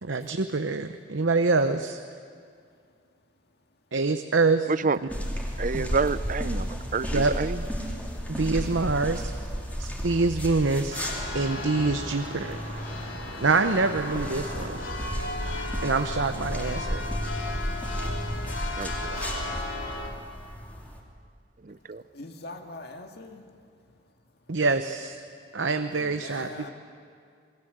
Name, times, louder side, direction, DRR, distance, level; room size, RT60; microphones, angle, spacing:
voice 1, 0.0-2.0 3.9-4.9 5.7-5.8 7.1-7.3 8.3-9.3 9.8-11.1 11.3-12.6 13.4-14.8 15.8-17.0 24.5-25.2 25.5-26.7, right 3 dB, 70° right, 8 dB, 0.8 m, -25 dB
sound 1, 5.1-21.0, equal, 10° left, 2.8 m, -34 dB
voice 2, 5.6-7.6 18.8-19.2 21.6-22.0, right 4 dB, 40° right, 16 dB, 0.5 m, -28 dB
Church bell, 10.9-20.1, left 1 dB, 85° left, 3.6 m, -35 dB
voice 3, 22.1-23.4 25.9-26.7, left 2 dB, 55° left, 4 dB, 2.1 m, -42 dB
27.5 x 21.5 x 7.9 m, 2.3 s
head